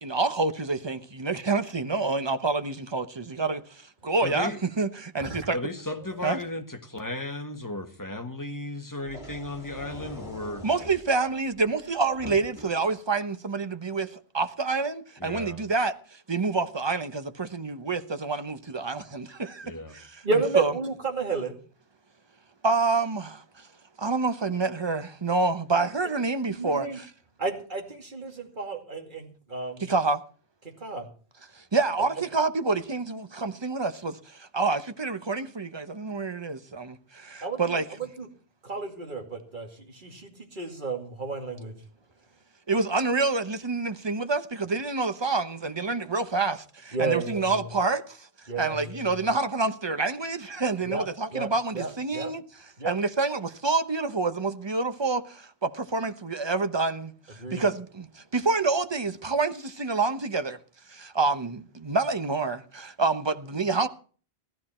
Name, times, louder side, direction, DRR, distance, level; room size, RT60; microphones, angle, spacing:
voice 1, 0.0-4.5 4.8-5.6 6.2-6.4 10.6-20.0 20.6-20.7 22.6-23.7 24.0-27.1 29.8-30.2 31.5-37.8 42.7-48.3 48.6-52.4 52.8-60.6 60.9-63.9, right 3 dB, 25° right, 0.9 m, -27 dB
voice 2, 4.2-4.6 5.5-10.7 15.2-15.6 19.6-20.0, left 2 dB, 20° left, 1.6 m, -35 dB
voice 3, 5.2-5.5 20.2-21.5 25.8-25.9 26.4-27.0 27.4-29.9 30.8-31.1 37.4-37.8 38.2-38.3 38.6-41.8 46.9-47.7 48.5-49.1 50.9-51.5 51.7-52.3 52.8-52.9 57.4-57.6, right 4 dB, 50° right, 2.6 m, -32 dB
sound 1, 9.0-13.0, left 1 dB, 45° left, 2.6 m, -45 dB
15.5 x 13.0 x 4.4 m
omnidirectional pair, 1.1 m